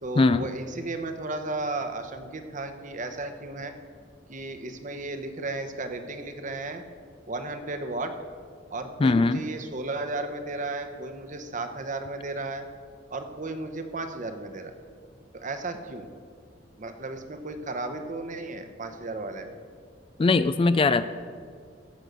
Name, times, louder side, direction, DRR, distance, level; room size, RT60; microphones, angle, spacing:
voice 1, 0.0-3.7 4.3-6.8 7.3-8.1 8.7-12.6 13.1-14.7 15.3-16.1 16.8-19.6, right 2 dB, 45° right, 8 dB, 1.0 m, -34 dB
voice 2, 9.0-9.4 20.2-21.1, left 3 dB, 30° left, 13 dB, 0.3 m, -20 dB
16.0 x 6.4 x 6.7 m, 2.1 s
head